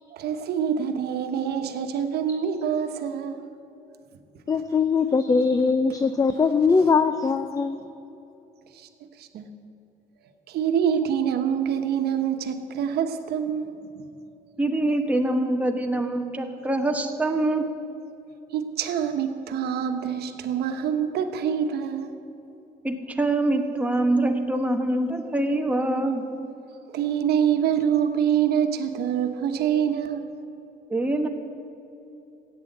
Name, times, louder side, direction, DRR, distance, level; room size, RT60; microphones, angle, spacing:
voice 1, 0.1-3.5 8.7-8.9 9.2-9.5 10.5-14.1 18.5-22.1 26.9-30.3, right 8 dB, 75° right, 1.2 m, -25 dB
voice 2, 4.5-7.8, left 5 dB, 20° left, 0.4 m, -21 dB
voice 3, 14.6-17.6 22.8-26.2 30.9-31.3, right 2 dB, 10° right, 1.1 m, -24 dB
15.5 x 9.0 x 8.0 m
cardioid pair, 150°, 17 cm